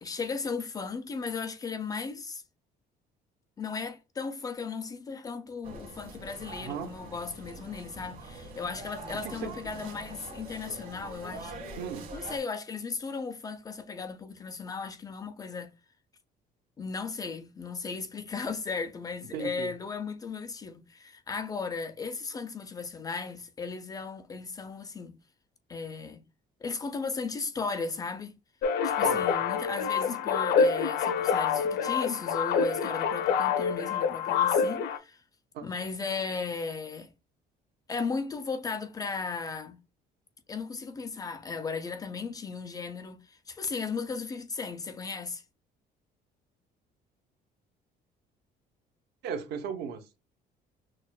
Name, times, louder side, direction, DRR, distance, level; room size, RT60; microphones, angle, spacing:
voice 1, 0.0-2.4 3.6-11.7 12.1-15.7 16.8-25.2 25.7-26.2 26.6-28.3 28.8-35.2 35.6-37.1 37.9-39.8 40.5-45.4, left 4 dB, 20° left, 0.3 m, -36 dB
sound 1, 5.6-12.4, right 2 dB, 55° right, 1.5 m, -44 dB
voice 2, 6.6-6.9 9.2-9.5 11.8-12.1 19.3-19.7 29.0-29.3 35.5-35.6 49.2-50.2, right 7 dB, 80° right, 0.8 m, -36 dB
sound 2, 28.6-35.0, left 6 dB, 75° left, 0.5 m, -26 dB
6.2 x 2.1 x 2.3 m
cardioid pair, 170°, 17 cm